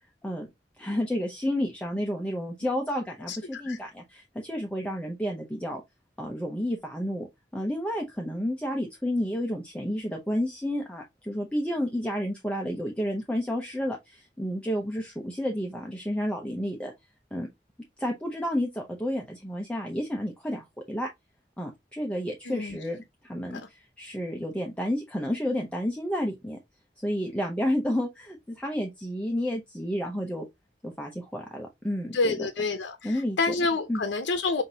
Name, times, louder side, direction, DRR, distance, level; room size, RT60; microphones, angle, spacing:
voice 1, 0.8-5.8 6.2-7.3 7.5-16.9 17.3-17.5 18.0-21.1 21.6-26.6 27.0-30.5 30.8-32.5 33.0-33.5 33.9-34.0, equal, 5° left, 0.6 m, -31 dB
voice 2, 3.3-3.8 22.5-22.8 23.5-23.7 32.1-34.6, left 3 dB, 90° left, 0.6 m, -28 dB
5.7 x 2.7 x 2.8 m
head